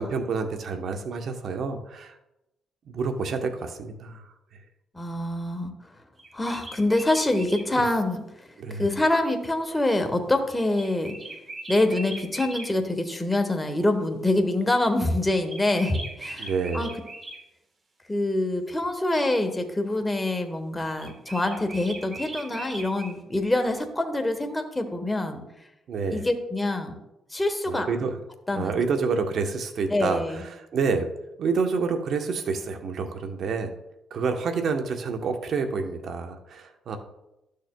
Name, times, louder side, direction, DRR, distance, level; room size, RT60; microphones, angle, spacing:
voice 1, 0.0-2.1 2.9-4.2 7.7-7.9 8.6-8.9 16.4-16.9 25.9-26.2 27.7-28.1 28.5-30.2 30.7-31.1 31.4-33.7 34.1-37.0, right 5 dB, 65° right, 6 dB, 0.9 m, -28 dB
voice 2, 4.9-5.7 6.3-11.2 11.7-16.9 18.1-25.4 26.1-27.0 27.3-27.9 28.5-28.7 29.9-30.4, left 1 dB, 10° left, 5 dB, 1.1 m, -25 dB
sound 1, 6.2-7.7 10.7-12.7 15.5-17.4 21.0-23.2, right 2 dB, 35° right, 1.2 m, -39 dB
12.0 x 6.6 x 2.2 m, 0.91 s
cardioid pair, 90°, 0 cm